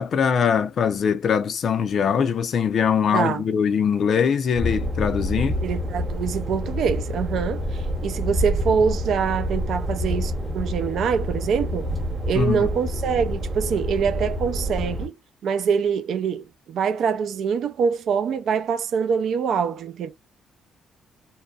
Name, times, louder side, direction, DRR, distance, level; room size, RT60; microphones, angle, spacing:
voice 1, 0.0-5.6 12.3-12.7, left 7 dB, 60° left, 0.4 m, -22 dB
voice 2, 3.1-3.4 5.6-11.9 12.3-15.2 15.4-20.1, right 6 dB, 65° right, 0.4 m, -24 dB
sound 1, 4.5-15.1, equal, 40° right, 0.9 m, -27 dB
2.7 x 2.2 x 2.3 m
cardioid pair, 85°, 0 cm